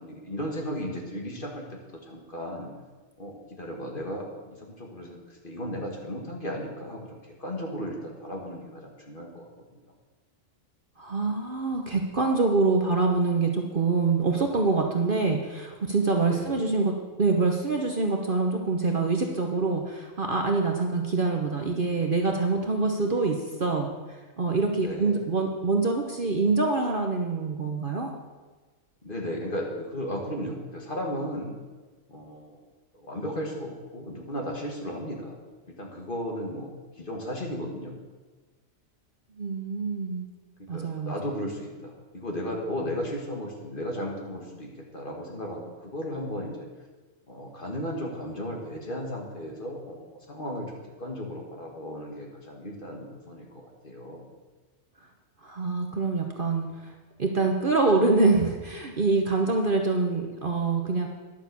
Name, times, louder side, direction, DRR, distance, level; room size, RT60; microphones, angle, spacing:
voice 1, 0.0-2.7 3.2-9.8 16.3-16.6 24.8-25.2 29.0-31.5 32.1-32.6 32.9-35.4 35.7-38.0 40.6-46.7 47.3-50.7 51.0-54.3, equal, 40° left, 0 dB, 2.0 m, -35 dB
voice 2, 11.0-23.9 24.4-28.1 39.4-40.3 40.7-41.1 55.4-56.9 57.2-61.1, right 3 dB, 45° right, 2 dB, 1.0 m, -25 dB
11.0 x 7.4 x 6.9 m, 1.3 s
omnidirectional pair, 1.4 m